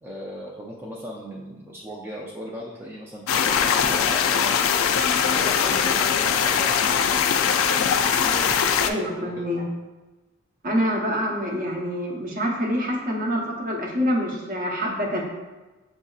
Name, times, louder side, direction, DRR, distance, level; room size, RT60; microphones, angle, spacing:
voice 1, 0.0-4.7 5.2-7.2 8.2-9.5, equal, 10° right, -4 dB, 0.4 m, -37 dB
sound 1, 3.3-8.9, left 7 dB, 70° left, 0.3 m, -21 dB
voice 2, 8.8-9.7 10.6-15.2, equal, 40° right, -1 dB, 0.8 m, -26 dB
7.1 x 2.7 x 2.3 m, 1.2 s
head